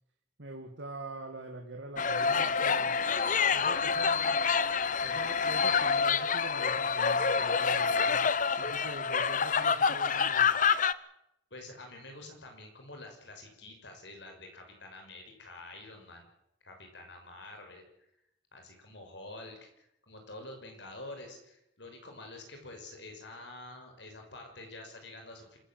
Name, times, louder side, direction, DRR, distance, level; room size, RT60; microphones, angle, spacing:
voice 1, 0.4-3.0 3.5-4.7 5.0-8.3 8.6-10.6, right 2 dB, 70° right, 1 dB, 2.4 m, -44 dB
sound 1, 2.0-10.9, left 5 dB, 40° left, 0.8 m, -27 dB
voice 2, 11.5-16.3 16.6-17.8 18.5-25.6, left 2 dB, 65° left, 4 dB, 6.0 m, -48 dB
26.5 x 14.5 x 7.8 m, 0.79 s
head